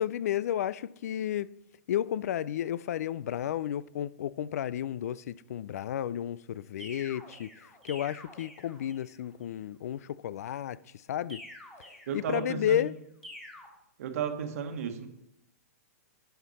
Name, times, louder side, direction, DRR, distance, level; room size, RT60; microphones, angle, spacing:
voice 1, 0.0-1.5 1.9-10.8 11.1-11.4 12.1-13.0, left 10 dB, 75° left, 0.3 m, -32 dB
sound 1, 6.8-9.2 11.3-12.7 13.2-13.7, left 1 dB, 5° left, 2.3 m, -48 dB
voice 2, 12.1-12.9 14.0-15.1, right 7 dB, 65° right, 1.3 m, -34 dB
11.0 x 5.8 x 4.2 m
hypercardioid pair, 145°, 9 cm